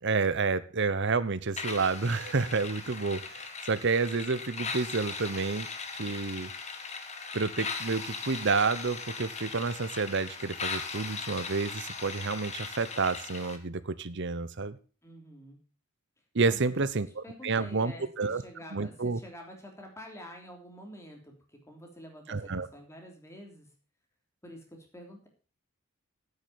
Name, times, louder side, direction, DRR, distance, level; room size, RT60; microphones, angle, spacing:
voice 1, 0.0-5.7 5.9-6.5 7.3-14.8 16.3-18.4 18.7-19.2 22.3-22.7, right 4 dB, 55° right, 15 dB, 0.9 m, -29 dB
sound 1, 1.6-13.6, left 4 dB, 30° left, 1.6 m, -39 dB
voice 2, 15.0-15.6 16.4-16.8 17.2-23.7 24.4-25.3, equal, 15° left, 2 dB, 3.2 m, -48 dB
9.6 x 8.9 x 6.9 m, 0.38 s
head